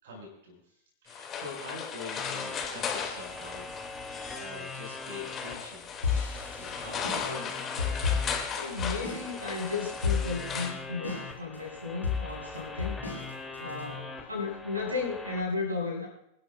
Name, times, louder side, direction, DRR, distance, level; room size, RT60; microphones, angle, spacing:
voice 1, 0.0-3.7 4.1-5.9 6.6-7.5, left 2 dB, 60° right, -1 dB, 5.2 m, -45 dB
sound 1, 1.1-10.7, left 7 dB, 25° left, 2.3 m, -37 dB
sound 2, 2.2-15.4, left 3 dB, 5° left, 2.8 m, -42 dB
sound 3, 6.0-9.3 9.5-9.6 10.0-10.6 11.0-11.6 12.0-13.8, left 5 dB, 80° left, 5.5 m, -31 dB
voice 2, 8.6-13.0 13.6-16.1, left 4 dB, 85° right, -2 dB, 6.0 m, -34 dB
27.0 x 12.0 x 2.4 m, 0.75 s
figure-of-eight pair, 90°, 0 cm